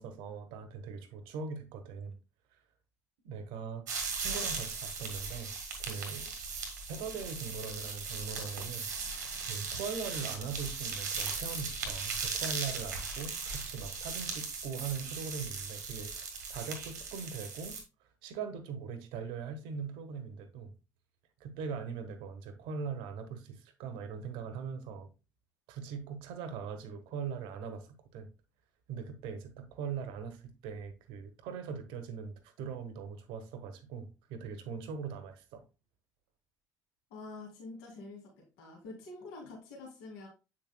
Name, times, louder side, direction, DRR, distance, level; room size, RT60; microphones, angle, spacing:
voice 1, 0.0-2.2 2.5-2.6 3.2-5.5 5.8-6.3 6.9-8.9 9.5-17.8 18.2-20.7 21.4-25.1 25.7-28.3 28.9-35.6, right 5 dB, 65° right, 1.3 m, -41 dB
sound 1, 3.9-17.8, right 5 dB, 80° right, 1.7 m, -38 dB
voice 2, 37.1-40.3, left 3 dB, 70° left, 2.5 m, -47 dB
8.3 x 6.5 x 2.2 m
figure-of-eight pair, 55°, 9 cm